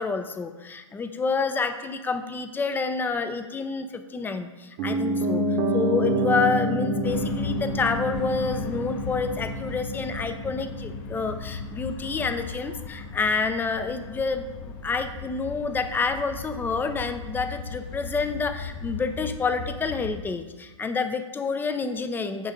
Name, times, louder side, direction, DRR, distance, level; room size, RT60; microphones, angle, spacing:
voice 1, 0.0-5.4 5.7-22.5, left 4 dB, 10° left, 8 dB, 0.6 m, -28 dB
Piano, 4.8-14.8 15.1-15.2, right 1 dB, 40° right, 1.2 m, -29 dB
sound 1, 7.0-20.2, left 5 dB, 45° left, 1.2 m, -38 dB
9.3 x 3.7 x 6.5 m, 1.2 s
hypercardioid pair, 115°, 16 cm